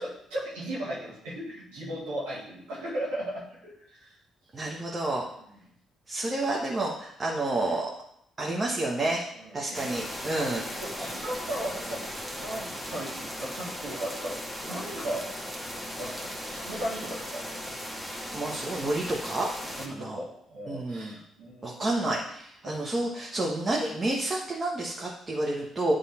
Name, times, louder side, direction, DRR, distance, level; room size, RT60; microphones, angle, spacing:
voice 1, 0.0-4.1 9.4-10.0 10.3-10.4 10.8-12.0 12.3-15.3 16.0-17.5 19.8-22.0 22.6-23.0, right 1 dB, 80° right, -7 dB, 2.2 m, -37 dB
voice 2, 4.5-5.3 6.1-7.9 8.4-9.2 9.5-10.6 18.1-19.5 19.9-20.2 20.7-21.2 21.6-25.9, right 2 dB, 35° right, -3 dB, 1.5 m, -29 dB
sound 1, 9.7-19.9, equal, 5° right, 1.9 m, -37 dB
10.5 x 3.7 x 4.4 m, 0.71 s
hypercardioid pair, 45°, 0 cm